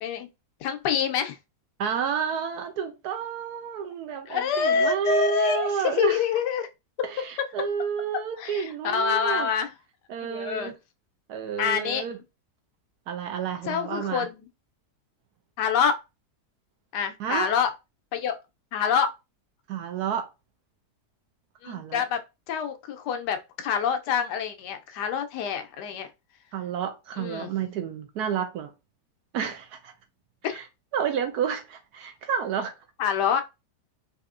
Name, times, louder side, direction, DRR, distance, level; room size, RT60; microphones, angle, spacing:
voice 1, 0.6-1.4 4.3-6.7 7.4-7.5 8.4-9.7 10.3-10.7 11.6-12.1 13.7-14.4 15.6-16.0 16.9-17.7 18.1-18.4 18.7-19.1 21.6-22.2 22.5-26.1 27.2-27.5 30.4-30.6 33.0-33.4, left 7 dB, 90° left, 1.2 m, -26 dB
voice 2, 1.8-6.2 7.0-9.5 10.1-10.8 11.3-12.2 13.1-14.3 17.2-17.5 19.7-20.3 21.6-22.0 26.5-28.7 29.3-29.9 30.4-30.6 30.9-32.7, right 7 dB, 75° right, 1.2 m, -30 dB
4.2 x 2.7 x 2.4 m
omnidirectional pair, 1.7 m